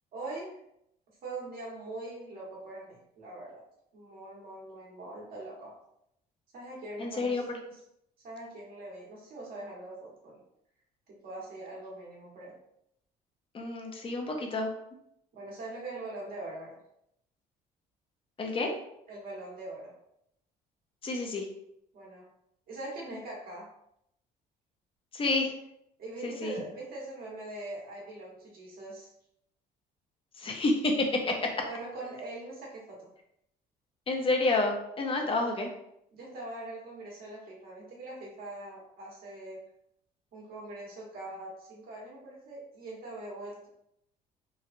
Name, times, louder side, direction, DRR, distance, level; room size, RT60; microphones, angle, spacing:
voice 1, 0.1-0.5 1.2-3.6 3.9-5.7 6.5-7.4 8.2-10.4 11.1-12.6 15.3-16.8 19.1-19.9 21.9-22.3 22.7-23.7 26.0-29.1 31.6-33.1 35.2-35.3 36.1-39.6 40.3-43.7, right 2 dB, 60° right, -5 dB, 1.3 m, -42 dB
voice 2, 7.0-7.4 13.5-14.7 18.4-18.7 21.0-21.5 25.1-25.5 26.2-26.5 30.4-31.5 34.1-35.7, left 2 dB, 30° left, 2 dB, 0.6 m, -29 dB
3.0 x 2.3 x 2.5 m, 0.77 s
cardioid pair, 110°, 17 cm